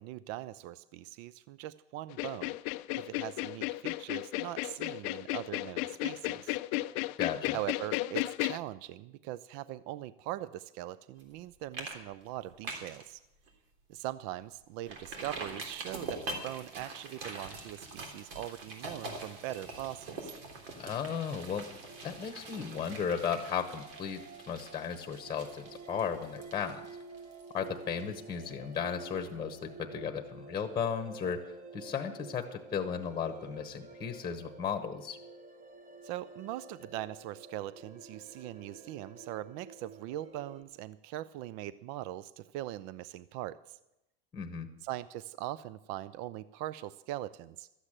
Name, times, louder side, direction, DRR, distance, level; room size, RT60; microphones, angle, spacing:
voice 1, 0.0-6.6 7.5-13.2 13.9-20.3 28.0-28.2 36.0-43.8 44.8-47.7, right 14 dB, 50° right, 17 dB, 0.5 m, -41 dB
sound 1, 2.1-8.6, left 19 dB, 55° left, 0.5 m, -34 dB
voice 2, 7.2-7.6 20.8-21.7 22.0-24.2 24.5-26.8 27.5-31.4 31.7-35.2 44.3-44.7, left 7 dB, 15° left, 6 dB, 1.0 m, -35 dB
sound 2, 11.2-11.4 11.7-12.0 12.3-13.0 13.5-13.6 14.0-14.1 14.9-28.4 28.7-28.8, right 3 dB, 80° right, 3.6 m, -44 dB
sound 3, 21.9-40.6, right 3 dB, 25° right, 1.1 m, -50 dB
13.0 x 8.2 x 8.8 m, 0.90 s
supercardioid pair, 140°, 29 cm